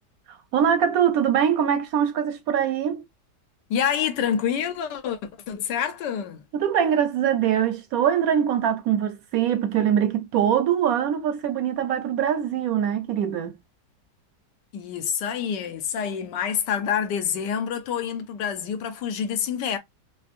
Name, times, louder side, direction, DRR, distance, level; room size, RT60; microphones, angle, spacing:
voice 1, 0.3-3.0 6.5-13.6, right 9 dB, 70° right, 0.9 m, -23 dB
voice 2, 3.7-6.4 14.7-19.8, left 8 dB, 90° left, 1.4 m, -27 dB
5.3 x 2.0 x 2.5 m
omnidirectional pair, 1.8 m